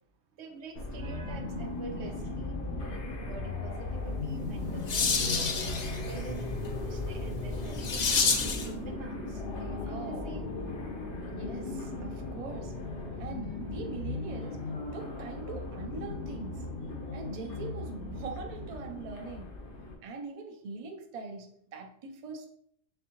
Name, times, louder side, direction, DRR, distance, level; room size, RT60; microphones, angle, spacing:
voice 1, 0.4-6.5 6.8-10.5, right 4 dB, 75° right, 0.9 m, -46 dB
sound 1, 0.7-19.9, left 2 dB, 80° left, 1.1 m, -37 dB
sound 2, 4.3-8.8, left 4 dB, 50° left, 0.5 m, -30 dB
voice 2, 4.4-5.1 9.9-10.3 11.3-14.6 14.9-16.7 17.1-19.6 20.0-22.5, right 4 dB, 50° right, 0.5 m, -42 dB
4.1 x 3.5 x 2.9 m
omnidirectional pair, 1.2 m